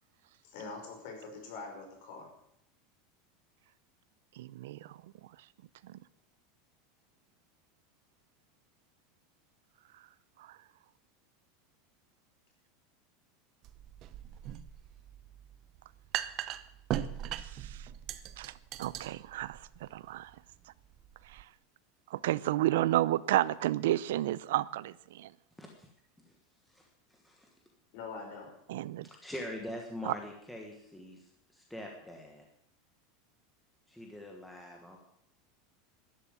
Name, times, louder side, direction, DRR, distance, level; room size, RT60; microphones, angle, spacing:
voice 1, 0.4-2.3 27.9-28.5, left 4 dB, 50° left, 5.3 m, -44 dB
voice 2, 4.4-4.8 18.4-18.5 18.8-20.3 21.3-21.4 22.1-25.3 28.7-29.1 30.1-30.2, right 15 dB, 80° right, 0.6 m, -31 dB
sound 1, 13.6-21.4, right 12 dB, 30° right, 0.7 m, -40 dB
voice 3, 25.6-25.9 26.2-26.4 26.6-27.5 29.0-32.5 33.9-35.0, left 1 dB, 5° left, 1.4 m, -44 dB
12.5 x 11.0 x 9.0 m
supercardioid pair, 175°, 0 cm